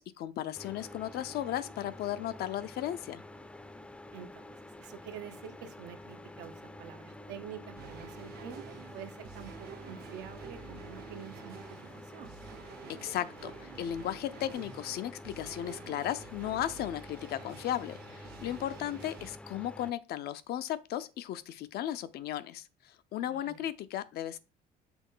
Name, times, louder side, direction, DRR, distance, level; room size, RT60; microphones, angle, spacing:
voice 1, 0.0-3.2 12.9-22.7 23.1-24.4, left 12 dB, 70° left, 0.6 m, -35 dB
sound 1, 0.5-19.9, left 1 dB, 5° left, 0.5 m, -49 dB
voice 2, 4.1-4.4 4.8-11.6 11.9-12.4 18.4-19.1 23.3-23.6, right 8 dB, 90° right, 1.0 m, -47 dB
sound 2, 7.7-19.3, right 8 dB, 65° right, 0.8 m, -50 dB
6.1 x 3.3 x 5.4 m
cardioid pair, 110°, 17 cm